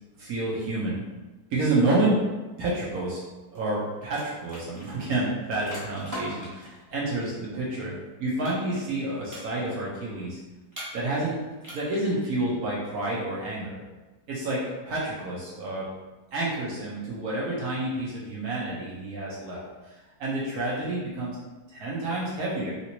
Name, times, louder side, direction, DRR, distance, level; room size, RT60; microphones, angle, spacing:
voice 1, 0.2-1.0 1.5-2.2 2.6-3.2 3.5-7.9 8.2-10.4 10.9-11.4 11.7-13.8 14.3-15.9 16.3-21.4 21.7-22.7, right 2 dB, 70° right, -6 dB, 1.2 m, -29 dB
sound 1, 3.6-3.8 4.0-6.8 8.5-9.0 9.3-9.9 10.7-11.3 11.6-12.1, equal, 15° right, 0.7 m, -40 dB
3.0 x 2.9 x 2.9 m, 1.2 s
omnidirectional pair, 1.7 m